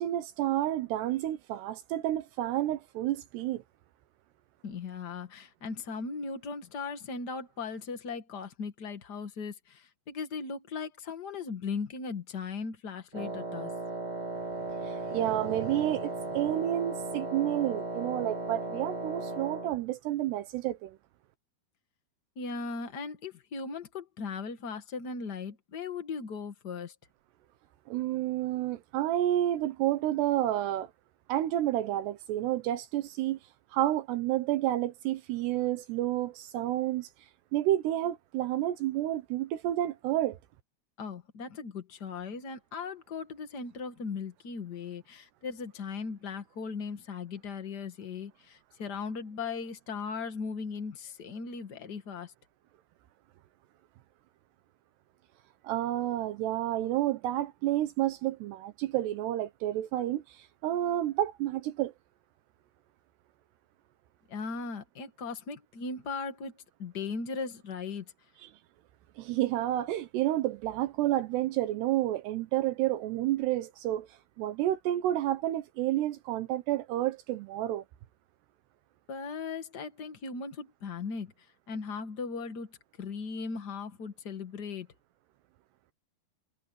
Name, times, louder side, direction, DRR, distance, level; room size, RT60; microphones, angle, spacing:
voice 1, 0.0-3.6 14.8-21.0 27.9-30.9 31.3-33.4 33.7-37.1 37.5-40.4 55.6-61.9 69.2-74.1 74.4-77.8, right 13 dB, 80° right, 3.0 m, -30 dB
voice 2, 4.6-13.7 22.3-26.9 41.0-52.3 64.3-66.5 66.8-68.1 79.1-84.9, left 5 dB, 70° left, 0.9 m, -38 dB
Wind instrument woodwind instrument, 13.1-19.8, right 2 dB, 20° right, 1.1 m, -36 dB
omnidirectional pair, 4.9 m